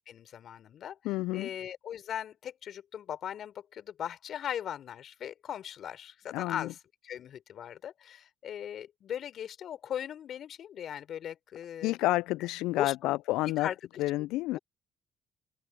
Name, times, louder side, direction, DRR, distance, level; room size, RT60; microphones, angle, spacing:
voice 1, 0.1-1.0 1.3-6.8 7.0-12.0 12.8-13.1 13.4-13.7 14.5-14.6, left 9 dB, 60° left, 4.2 m, -39 dB
voice 2, 1.0-1.5 6.3-6.7 11.8-13.7 14.0-14.6, left 18 dB, 75° left, 0.3 m, -29 dB
open air
hypercardioid pair, 55°, 0 cm